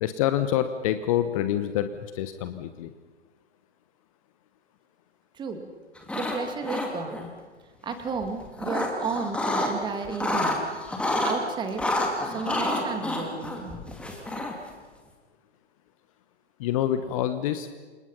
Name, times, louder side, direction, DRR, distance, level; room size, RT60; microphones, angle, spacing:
voice 1, 0.0-2.9 16.6-17.7, left 11 dB, 30° left, 10 dB, 1.2 m, -27 dB
voice 2, 5.4-5.7 6.1-7.3 7.8-10.6 11.2-11.9 12.2-13.8, right 5 dB, 15° right, 6 dB, 2.4 m, -33 dB
sound 1, 6.0-6.4 6.6-7.3 8.2-9.7 10.0-11.3 11.8-14.7, left 1 dB, 5° left, 2.8 m, -28 dB
29.0 x 26.0 x 5.7 m, 1.4 s
figure-of-eight pair, 120°, 34 cm